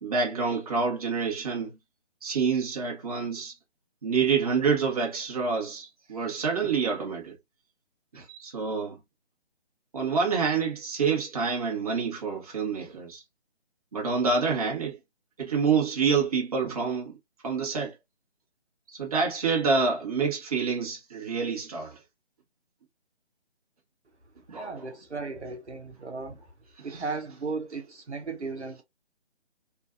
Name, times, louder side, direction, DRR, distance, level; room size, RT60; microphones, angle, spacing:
voice 1, 0.0-1.8 2.2-3.5 4.0-7.3 8.1-9.0 9.9-13.2 13.9-15.0 15.4-17.1 17.4-17.9 18.9-22.0 24.5-24.9 26.8-27.0, right 5 dB, 35° right, 1.1 m, -27 dB
voice 2, 24.5-26.4 26.8-28.8, right 4 dB, 80° right, 0.8 m, -35 dB
2.5 x 2.5 x 2.4 m
figure-of-eight pair, 150°, 33 cm